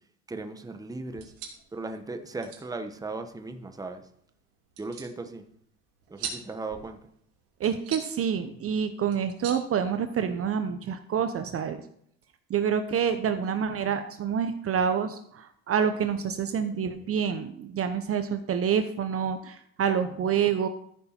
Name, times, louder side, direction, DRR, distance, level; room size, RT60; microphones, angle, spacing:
voice 1, 0.3-1.3 1.7-4.0 4.8-5.5 6.1-7.0, right 3 dB, 10° right, 7 dB, 1.1 m, -37 dB
sound 1, 1.1-10.5, right 7 dB, 70° right, 3.0 m, -45 dB
voice 2, 7.6-11.8 12.5-20.7, right 7 dB, 40° right, 9 dB, 0.9 m, -27 dB
14.0 x 6.7 x 4.4 m, 0.68 s
supercardioid pair, 110°, 36 cm